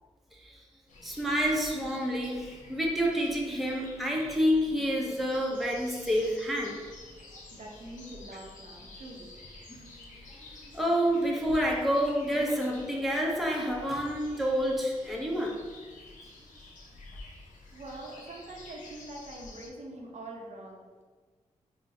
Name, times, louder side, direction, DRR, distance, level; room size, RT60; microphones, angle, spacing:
sound 1, 0.9-19.7, left 2 dB, 80° left, 0.5 m, -50 dB
voice 1, 1.0-6.8 9.7-9.8 10.1-15.6, equal, ahead, -2 dB, 0.7 m, -28 dB
voice 2, 7.5-9.3 17.7-21.0, right 1 dB, 60° right, 0 dB, 0.7 m, -44 dB
4.0 x 2.1 x 2.7 m, 1.4 s
cardioid pair, 50°, 13 cm